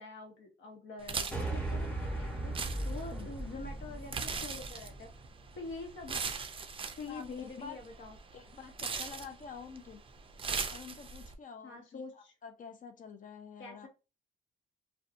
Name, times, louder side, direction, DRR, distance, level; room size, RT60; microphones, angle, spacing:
voice 1, 0.0-2.5 2.8-5.1 5.6-6.4 7.0-8.2 11.6-12.3 13.6-13.9, left 3 dB, 70° left, 1.0 m, -45 dB
sound 1, 1.0-11.3, right 5 dB, 25° right, 0.4 m, -40 dB
sound 2, 1.3-5.7, right 2 dB, 5° left, 1.0 m, -38 dB
voice 2, 7.1-7.8 8.3-10.0 10.7-13.9, left 6 dB, 40° left, 0.5 m, -48 dB
2.5 x 2.2 x 2.5 m
cardioid pair, 90°, 20 cm